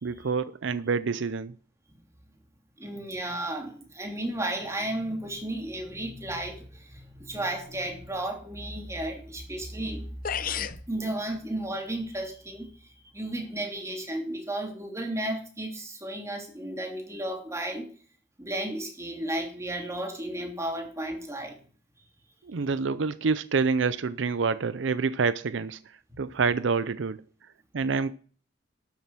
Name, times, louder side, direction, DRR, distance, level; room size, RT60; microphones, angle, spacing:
voice 1, 0.0-1.5 22.4-25.8 26.2-27.2 27.7-28.1, right 5 dB, 75° right, 0.5 m, -27 dB
voice 2, 2.8-10.1 10.9-17.9 18.4-21.6, right 1 dB, 15° right, 2.9 m, -33 dB
sound 1, 9.9-10.0 10.2-10.8, left 8 dB, 50° left, 0.7 m, -31 dB
12.5 x 7.4 x 6.1 m
head